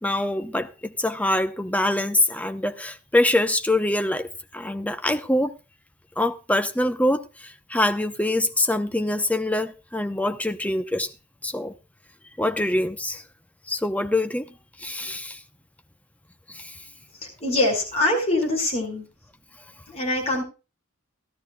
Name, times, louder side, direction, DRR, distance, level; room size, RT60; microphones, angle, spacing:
voice 1, 0.0-5.5 6.2-11.1 11.4-11.7 12.4-13.2 13.7-14.5 14.8-15.4 16.5-16.7, left 1 dB, 5° left, 0.8 m, -24 dB
voice 2, 17.2-19.1 19.9-20.4, left 2 dB, 30° left, 5.6 m, -24 dB
17.0 x 12.5 x 2.3 m
head